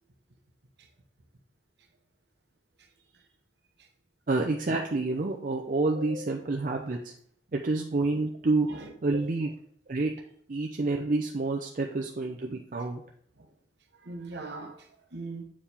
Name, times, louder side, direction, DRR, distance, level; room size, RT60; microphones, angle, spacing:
voice 1, 4.3-7.1 7.5-8.7 9.0-9.5 9.9-10.1 10.5-13.0, right 3 dB, 45° right, 0.5 m, -28 dB
voice 2, 8.7-9.2 13.4-13.5 14.0-15.4, right 2 dB, 65° right, 1.0 m, -40 dB
7.3 x 4.6 x 3.5 m
head